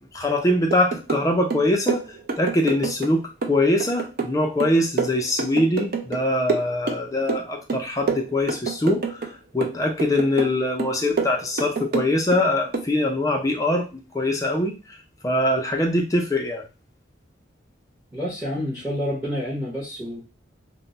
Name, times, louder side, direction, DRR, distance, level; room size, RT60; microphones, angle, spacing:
voice 1, 0.1-2.0 2.4-15.0 15.2-16.6, left 1 dB, 15° left, 1 dB, 0.4 m, -23 dB
sound 1, 0.7-1.3 1.5-3.1 3.4-6.2 6.5-7.4 7.7-9.3 9.6-10.5 10.8-12.4 12.7-12.9, right 4 dB, 50° right, 0.4 m, -28 dB
voice 2, 18.1-20.2, equal, 10° right, -5 dB, 0.8 m, -28 dB
2.2 x 2.1 x 3.8 m, 0.30 s
head